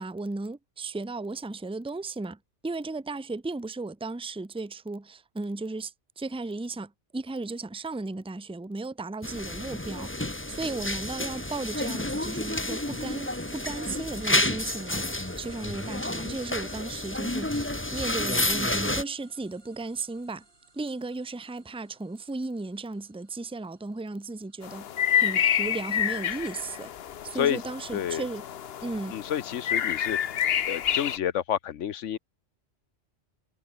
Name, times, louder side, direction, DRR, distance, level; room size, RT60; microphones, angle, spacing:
voice 1, 0.0-15.1 15.4-20.4 20.7-24.9 25.2-26.9 27.2-28.4 28.8-29.1, right 3 dB, 5° right, 0.7 m, -35 dB
sound 1, 9.2-19.0, left 1 dB, 10° left, 1.4 m, -30 dB
sound 2, 11.1-25.2, right 2 dB, 45° right, 3.2 m, -54 dB
sound 3, 24.6-31.2, left 9 dB, 60° left, 0.9 m, -28 dB
voice 2, 27.9-28.2 29.1-30.2 30.7-32.2, left 10 dB, 85° left, 1.2 m, -29 dB
omnidirectional pair, 1.2 m